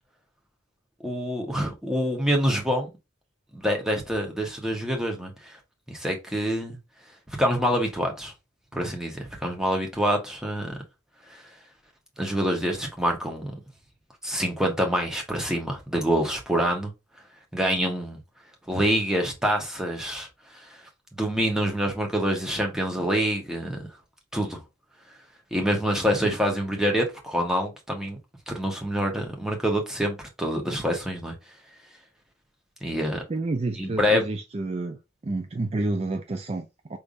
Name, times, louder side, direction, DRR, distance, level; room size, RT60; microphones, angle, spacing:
voice 1, 1.0-2.9 3.5-5.6 5.9-6.8 7.4-8.3 8.7-10.8 11.3-11.4 12.2-13.5 14.2-16.9 17.5-18.2 18.7-20.3 20.5-20.7 21.2-23.8 24.3-24.6 25.5-28.2 28.5-31.3 32.8-33.2 33.8-34.2, equal, 5° right, 1.1 m, -26 dB
voice 2, 33.3-37.0, right 2 dB, 30° right, 0.4 m, -30 dB
5.1 x 3.4 x 2.6 m
head